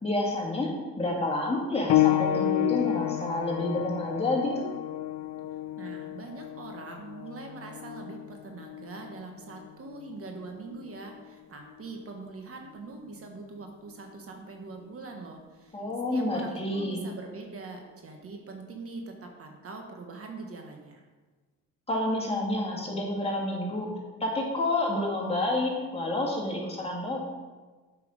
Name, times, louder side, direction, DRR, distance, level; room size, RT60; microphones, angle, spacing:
voice 1, 0.0-4.5 15.7-17.0 21.9-23.9 24.2-27.2, left 1 dB, 20° left, -2 dB, 2.3 m, -29 dB
sound 1, 1.9-12.1 13.1-13.2 13.9-14.0, left 14 dB, 65° left, 0.5 m, -31 dB
voice 2, 5.8-15.8 16.1-21.0, right 3 dB, 50° right, 2 dB, 1.3 m, -43 dB
7.9 x 5.7 x 5.0 m, 1.3 s
cardioid pair, 90°, 30 cm